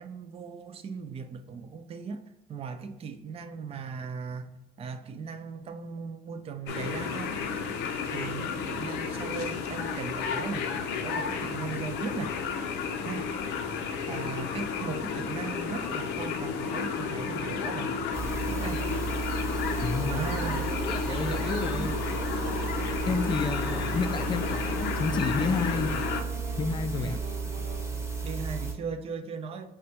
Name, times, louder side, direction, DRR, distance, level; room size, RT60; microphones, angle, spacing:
voice 1, 0.0-7.4 8.0-10.7 11.0-12.4 13.0-13.3 14.1-17.9 18.5-18.9 20.1-20.7 21.1-21.9 23.0-23.3 26.9-27.2 28.2-29.7, right 5 dB, 35° right, 0.4 m, -38 dB
sound 1, 6.7-26.2, left 6 dB, 90° left, 0.5 m, -32 dB
sound 2, 18.1-28.7, right 4 dB, 15° right, 0.8 m, -33 dB
Wind instrument woodwind instrument, 18.4-27.9, right 3 dB, 90° right, 0.8 m, -45 dB
voice 2, 19.8-20.2 20.8-21.9 23.1-25.9 26.6-27.2, left 4 dB, 25° left, 0.3 m, -30 dB
5.0 x 2.2 x 2.8 m
cardioid pair, 110°, 17 cm